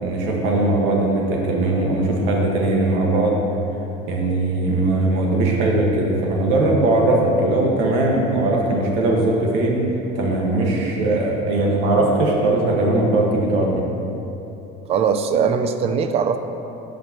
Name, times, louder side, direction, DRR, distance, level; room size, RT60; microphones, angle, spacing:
voice 1, 0.0-3.4 4.1-9.8 10.1-13.9, right 2 dB, 70° right, -1 dB, 1.5 m, -19 dB
voice 2, 14.9-16.4, right 6 dB, 30° right, 9 dB, 0.4 m, -20 dB
14.5 x 5.1 x 3.0 m, 3.0 s
cardioid pair, 165°, 21 cm